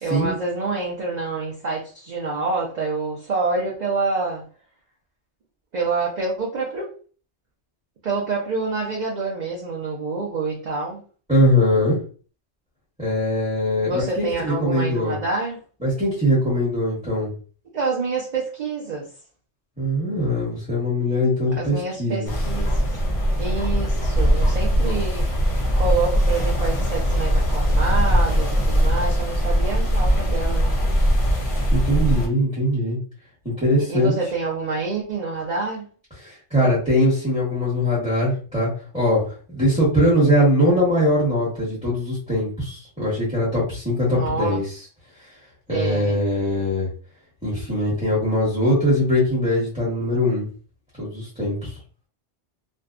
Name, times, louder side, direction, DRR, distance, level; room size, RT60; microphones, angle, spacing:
voice 1, 0.0-4.4 5.7-6.9 8.0-11.0 13.8-15.6 17.7-19.1 21.6-22.8 23.4-25.3 25.7-30.8 33.9-35.9 44.1-44.8 45.7-46.2, right 3 dB, 50° right, -3 dB, 0.6 m, -27 dB
voice 2, 11.3-12.0 13.0-15.1 15.8-17.3 19.8-22.3 31.7-33.0 33.4-34.1 36.2-39.2 39.5-44.6 45.7-46.9 47.4-50.5 51.0-51.7, equal, 5° right, -8 dB, 0.9 m, -21 dB
sound 1, 22.3-32.3, equal, 45° left, 0.4 m, -20 dB
2.5 x 2.2 x 2.4 m, 0.40 s
omnidirectional pair, 1.2 m